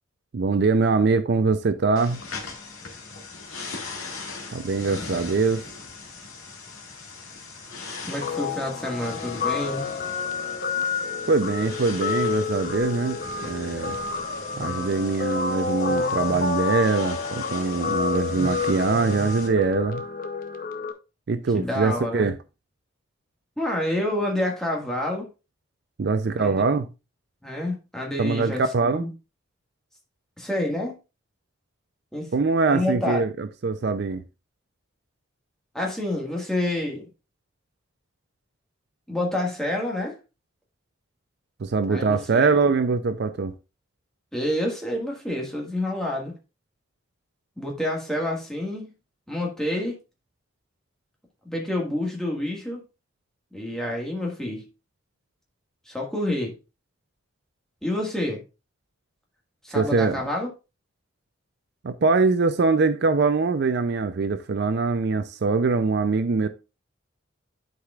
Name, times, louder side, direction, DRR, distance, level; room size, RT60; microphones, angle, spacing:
voice 1, 0.3-2.2 4.5-5.6 11.3-14.0 14.6-20.0 21.3-22.4 26.0-26.9 28.2-29.1 32.3-34.2 41.6-43.5 59.7-60.2 61.8-66.5, right 4 dB, 50° right, 0.4 m, -23 dB
sound 1, 2.0-19.5, left 3 dB, 90° left, 2.0 m, -39 dB
voice 2, 8.1-9.9 21.5-22.3 23.6-25.3 26.4-26.6 27.4-29.1 30.4-30.9 32.1-32.3 32.7-33.2 35.7-37.1 39.1-40.2 41.9-42.5 44.3-46.3 47.6-48.9 49.3-49.9 51.4-52.8 53.5-54.6 55.8-56.5 57.8-58.4 59.6-60.5, left 1 dB, 5° left, 1.6 m, -28 dB
Guitar, 8.2-20.9, left 5 dB, 40° left, 0.6 m, -29 dB
11.5 x 4.9 x 2.3 m
head